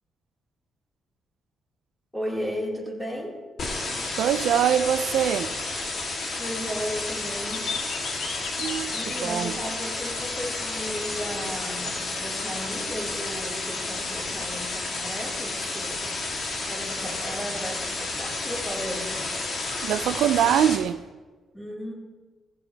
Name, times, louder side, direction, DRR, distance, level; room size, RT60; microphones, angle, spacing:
voice 1, 2.1-3.4 6.3-7.8 8.9-16.1 16.6-19.3 21.5-21.9, equal, 10° left, 4.4 m, -35 dB
sound 1, 3.6-20.8, left 3 dB, 60° left, 2.9 m, -31 dB
voice 2, 4.2-5.5 8.6-9.5 19.8-21.0, right 10 dB, 85° right, 0.4 m, -23 dB
sound 2, 6.3-6.8 7.1-9.3 9.6-9.7 11.9-12.2 12.5-13.2 16.5-16.6, left 5 dB, 85° left, 1.6 m, -36 dB
16.5 x 15.5 x 3.4 m
cardioid pair, 100°, 0 cm